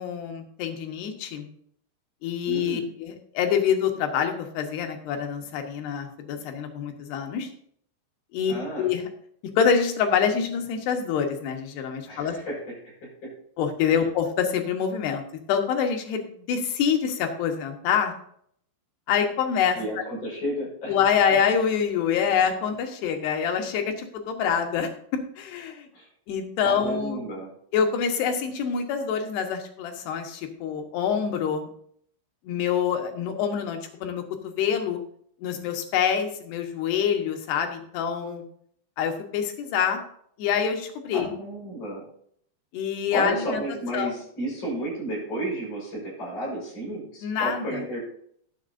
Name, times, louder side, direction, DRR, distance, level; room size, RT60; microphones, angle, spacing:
voice 1, 0.0-1.5 2.2-7.5 8.3-9.1 9.6-12.4 13.6-15.2 15.5-18.1 19.1-20.0 20.9-25.9 26.3-27.2 27.7-31.7 32.5-35.0 35.4-38.4 39.0-40.0 40.4-41.3 42.7-43.6 43.9-44.1 47.2-47.8, left 7 dB, 70° left, 4 dB, 3.0 m, -26 dB
voice 2, 2.4-2.9 8.5-8.9 12.1-12.6 12.8-12.9 13.2-13.3 13.9-14.0 19.7-21.0 25.9-26.1 26.6-27.5 41.1-42.1 43.1-48.0, right 1 dB, 25° left, -5 dB, 5.7 m, -32 dB
18.0 x 7.6 x 2.6 m, 0.64 s
omnidirectional pair, 5.3 m